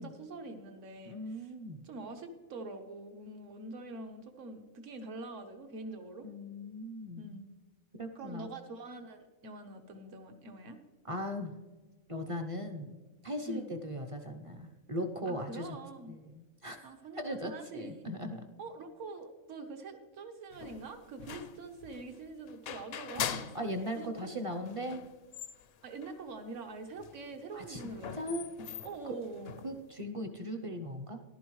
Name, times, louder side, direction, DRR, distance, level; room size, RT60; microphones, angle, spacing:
voice 1, 0.0-1.5 1.8-6.3 7.2-7.5 8.1-10.8 13.5-13.7 15.3-16.1 16.8-18.1 18.6-23.6 23.9-24.3 25.8-28.4 28.8-29.5, right 3 dB, 65° right, 6 dB, 1.4 m, -45 dB
voice 2, 1.0-1.8 6.2-7.4 8.0-8.5 11.0-11.6 12.1-13.0 13.2-15.8 16.1-18.4 23.1-23.3 23.5-25.1 27.5-27.8 28.1-28.5 29.0-29.1 29.6-31.2, equal, 35° right, 6 dB, 0.5 m, -39 dB
sound 1, 20.5-24.1 24.4-24.5 24.6-26.2 26.6-26.7 26.9-30.0, left 8 dB, 65° left, 0.6 m, -42 dB
14.5 x 11.5 x 3.1 m, 1.3 s
omnidirectional pair, 1.4 m